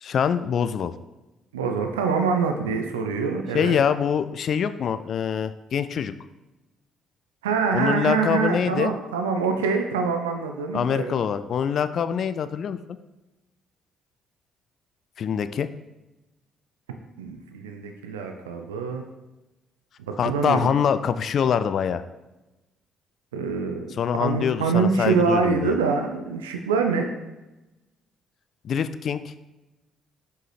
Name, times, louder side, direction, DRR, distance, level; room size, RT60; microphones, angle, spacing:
voice 1, 0.0-0.9 3.5-6.1 7.7-8.9 10.7-12.8 15.2-15.7 20.2-22.0 24.0-25.7 28.6-29.3, left 7 dB, 55° left, 12 dB, 0.3 m, -24 dB
voice 2, 1.5-3.8 7.4-11.1 17.2-19.0 20.3-20.7 23.3-23.9 24.2-27.1, right 5 dB, 85° right, 5 dB, 0.4 m, -25 dB
5.7 x 5.3 x 3.3 m, 1.0 s
hypercardioid pair, 45°, 0 cm